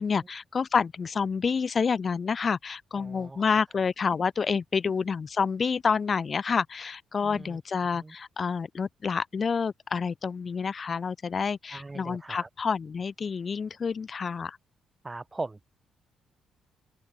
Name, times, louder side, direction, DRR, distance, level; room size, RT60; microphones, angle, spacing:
voice 1, 0.0-14.6, left 5 dB, 40° left, 1.7 m, -28 dB
voice 2, 2.9-3.5 7.2-7.6 7.9-8.1 11.7-12.5 15.0-15.6, right 2 dB, 20° right, 0.8 m, -40 dB
open air
cardioid pair, 90°, 0 cm